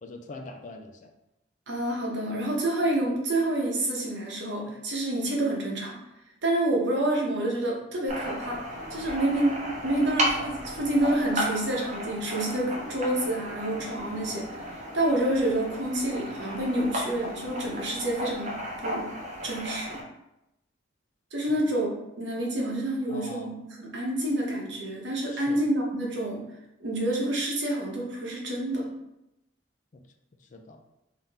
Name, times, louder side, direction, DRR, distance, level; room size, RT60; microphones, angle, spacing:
voice 1, 0.0-1.1 21.5-21.6 23.1-23.5 25.3-25.6 30.5-30.8, left 2 dB, 40° left, 5 dB, 0.4 m, -43 dB
voice 2, 1.7-5.9 6.4-8.6 8.9-9.6 9.8-18.6 18.8-19.1 19.4-20.0 21.3-21.9 22.2-26.4 26.8-28.9, right 1 dB, 65° right, -2 dB, 1.0 m, -28 dB
sound 1, 8.1-20.0, equal, 35° right, 0.7 m, -34 dB
3.7 x 2.8 x 3.5 m, 0.88 s
head